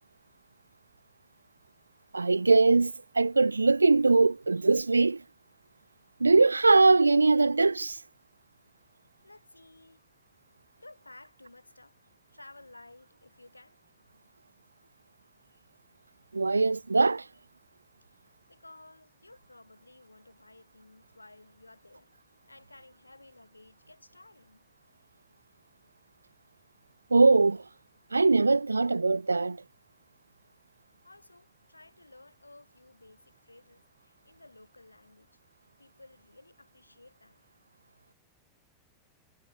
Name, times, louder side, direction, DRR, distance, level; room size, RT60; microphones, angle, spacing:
voice 1, 2.1-5.2 6.2-8.0 16.3-17.3 27.1-27.6 28.1-29.6, right 3 dB, 80° right, 0.4 m, -22 dB
voice 2, 9.2-10.0 10.8-12.0 12.3-13.8 18.0-24.7 31.0-35.4 35.8-37.4, left 2 dB, 85° left, 5.0 m, -55 dB
figure-of-eight pair, 90°, 0 cm